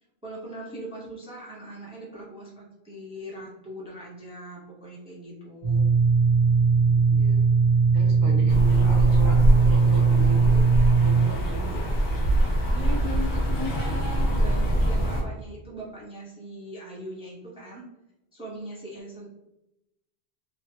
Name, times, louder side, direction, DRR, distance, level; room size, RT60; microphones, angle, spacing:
voice 1, 0.2-5.8 8.2-8.5 12.7-17.8 18.3-19.3, equal, 5° right, -5 dB, 0.6 m, -39 dB
sound 1, 5.6-11.3, right 5 dB, 40° right, 1.2 m, -19 dB
voice 2, 6.6-7.5 7.9-10.7 11.0-11.9, right 2 dB, 80° right, 0 dB, 0.9 m, -38 dB
sound 2, 8.5-15.2, right 1 dB, 90° left, 1.1 m, -24 dB
3.0 x 2.3 x 2.8 m, 0.91 s
omnidirectional pair, 1.1 m